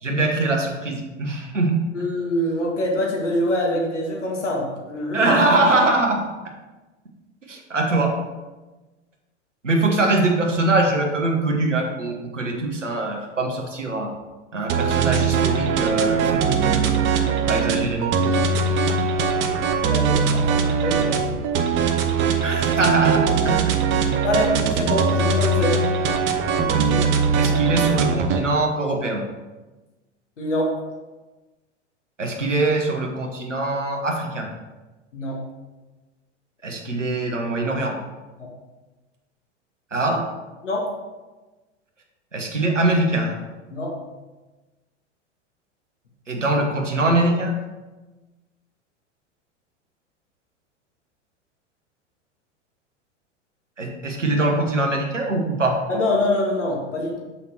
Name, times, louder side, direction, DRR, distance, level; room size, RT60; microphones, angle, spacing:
voice 1, 0.0-1.8 5.1-6.2 7.5-8.1 9.6-14.1 14.5-17.0 17.5-18.3 22.4-23.8 26.7-29.2 32.2-34.5 36.6-38.0 39.9-40.2 42.3-43.4 46.3-47.5 53.8-55.7, right 2 dB, 90° right, 0 dB, 1.2 m, -23 dB
voice 2, 1.9-5.3 19.9-20.4 20.8-21.4 24.2-25.8 30.4-30.7 35.1-35.4 38.4-38.5 40.6-40.9 43.7-43.9 55.9-57.2, left 1 dB, 80° left, -2 dB, 2.0 m, -24 dB
sound 1, 14.7-28.4, right 5 dB, 35° right, 0.8 m, -21 dB
6.8 x 5.7 x 4.4 m, 1.2 s
figure-of-eight pair, 90°, 36 cm